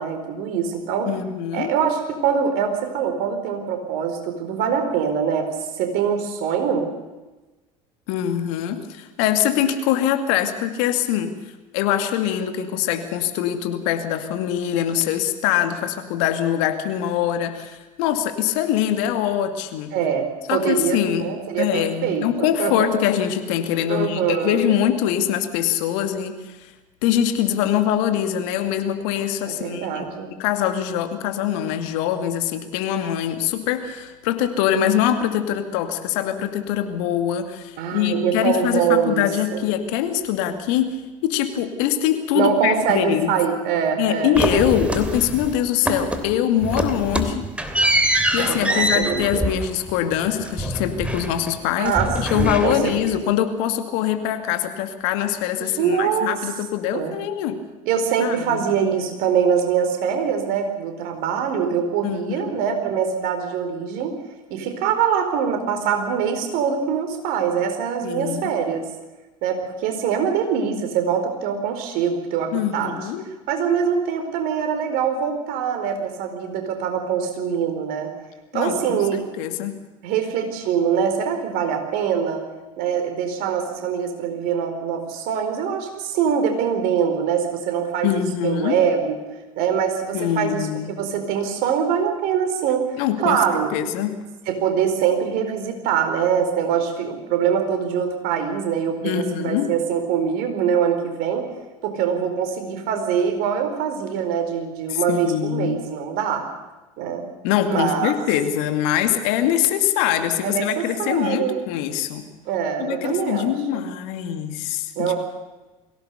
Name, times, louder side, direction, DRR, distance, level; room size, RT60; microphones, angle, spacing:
voice 1, 0.0-1.1 1.5-5.5 5.8-6.9 19.9-22.9 23.9-24.7 29.4-30.3 37.8-39.3 39.5-39.6 42.3-44.7 48.4-49.5 51.8-53.2 55.6-56.3 56.9-57.1 57.9-64.2 64.5-68.8 69.4-72.9 73.5-78.1 78.5-79.2 80.0-82.4 82.8-89.2 89.6-90.7 91.0-92.9 93.2-93.7 94.5-101.5 101.8-106.4 107.0-107.2 107.6-108.1 110.4-111.6 112.5-113.8 115.0-115.2, right 7 dB, 60° right, 6 dB, 4.4 m, -23 dB
voice 2, 1.1-1.7 8.1-11.3 11.7-19.9 20.5-21.3 21.6-26.7 27.0-30.1 30.4-43.3 44.0-47.5 48.3-57.6 58.2-58.6 62.0-62.6 68.0-68.5 72.5-73.3 78.5-79.7 88.0-88.8 90.1-90.9 93.0-94.2 99.0-99.7 104.9-105.8 107.4-112.3 112.8-115.1, left 10 dB, 65° left, 7 dB, 2.3 m, -23 dB
sound 1, 44.3-45.6 45.8-46.3 46.6-51.6 51.8-53.1, right 1 dB, 5° right, 3.0 m, -24 dB
23.0 x 17.0 x 6.9 m, 1.1 s
hypercardioid pair, 75°, 18 cm